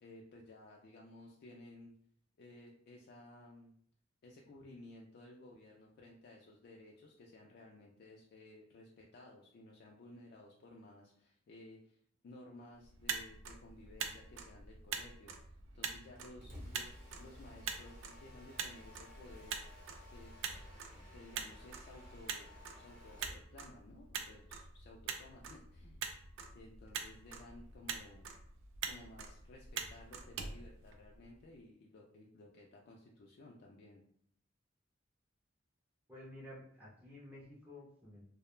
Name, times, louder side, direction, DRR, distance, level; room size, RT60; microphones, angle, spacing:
voice 1, 0.0-2.0 2.4-3.7 4.2-12.0 12.2-16.9 17.2-19.6 20.1-20.3 21.1-26.0 26.5-28.3 28.8-34.0, left 2 dB, 55° left, -1 dB, 0.3 m, -56 dB
Motor vehicle (road), 12.8-31.4, right 6 dB, 85° right, 0.4 m, -45 dB
Mechanisms, 16.2-23.4, left 1 dB, 45° right, 0.7 m, -55 dB
voice 2, 36.1-38.2, left 1 dB, 10° right, -7 dB, 0.5 m, -52 dB
2.3 x 2.0 x 3.0 m, 0.62 s
head